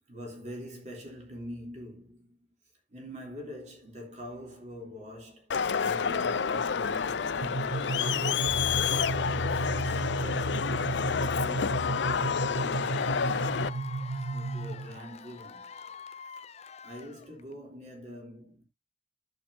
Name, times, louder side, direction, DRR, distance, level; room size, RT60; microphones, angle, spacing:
voice 1, 0.1-2.4 2.9-8.7 9.2-10.7 11.1-13.9 14.3-15.7 16.8-18.6, equal, 40° right, 3.5 m, -44 dB
Crowd, 5.5-13.7, left 6 dB, 85° left, 0.5 m, -29 dB
sound 1, 7.4-15.0, right 3 dB, 60° right, 0.7 m, -34 dB
Cheering / Applause / Crowd, 12.8-17.5, left 6 dB, 40° left, 0.5 m, -45 dB
10.5 x 7.7 x 2.8 m
head